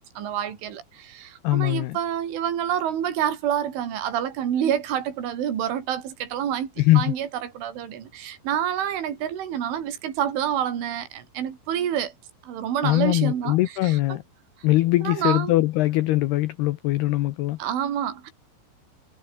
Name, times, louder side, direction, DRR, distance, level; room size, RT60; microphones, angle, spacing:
voice 1, 0.2-12.1 12.4-13.6 13.8-14.2 15.0-15.6 17.6-18.3, right 9 dB, 70° right, 5.9 m, -28 dB
voice 2, 1.4-2.0 6.8-7.1 12.8-14.2 14.6-17.6, left 17 dB, 85° left, 2.3 m, -21 dB
omnidirectional pair, 5.8 m